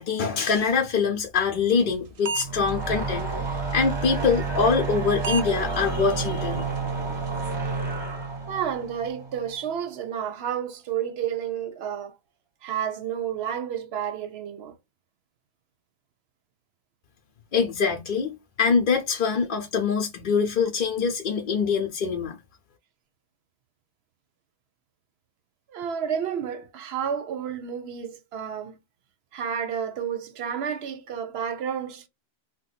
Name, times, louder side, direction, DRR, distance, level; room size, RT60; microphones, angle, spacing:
voice 1, 0.0-3.3 3.7-6.7 17.5-22.4, left 5 dB, 55° left, 0.7 m, -24 dB
sound 1, 1.9-2.0 2.3-2.7 3.2-3.3 4.7-4.9 5.2-5.4 5.7-5.8 6.2-6.3 6.8-6.9 7.1-7.5, right 4 dB, 60° right, 0.3 m, -30 dB
sound 2, 2.4-9.7, right 4 dB, 25° right, 1.1 m, -30 dB
voice 2, 8.5-12.2 12.6-14.8 25.7-28.8 29.3-32.1, right 8 dB, 75° right, 0.8 m, -31 dB
2.5 x 2.2 x 4.0 m
omnidirectional pair, 1.1 m